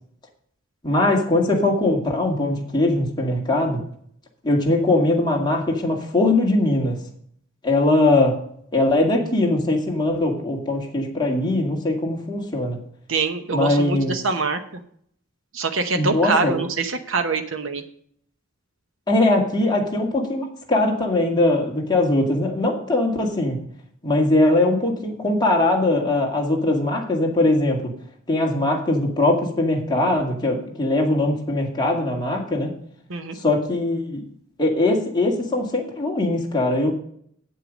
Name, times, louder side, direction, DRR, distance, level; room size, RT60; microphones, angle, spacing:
voice 1, 0.8-3.8 4.4-7.0 7.6-8.4 8.7-12.8 13.5-14.1 16.0-16.6 19.1-23.6 24.0-27.9 28.3-32.7 33.4-34.2 34.6-36.9, left 2 dB, 20° left, -1 dB, 2.1 m, -21 dB
voice 2, 13.1-14.8 15.5-17.8 33.1-33.4, right 4 dB, 65° right, 7 dB, 0.9 m, -24 dB
8.8 x 8.0 x 5.2 m, 0.63 s
head